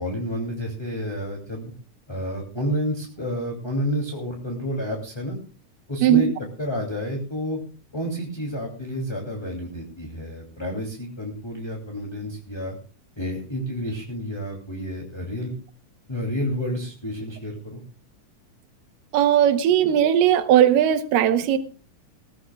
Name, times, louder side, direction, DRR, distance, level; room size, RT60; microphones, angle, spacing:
voice 1, 0.0-1.7 2.1-5.4 5.9-6.3 6.6-7.6 7.9-12.8 13.2-15.5 16.1-17.8, equal, 10° left, 0 dB, 2.1 m, -30 dB
voice 2, 19.1-21.6, right 10 dB, 85° right, 9 dB, 2.6 m, -18 dB
20.0 x 16.0 x 2.3 m, 0.37 s
omnidirectional pair, 3.8 m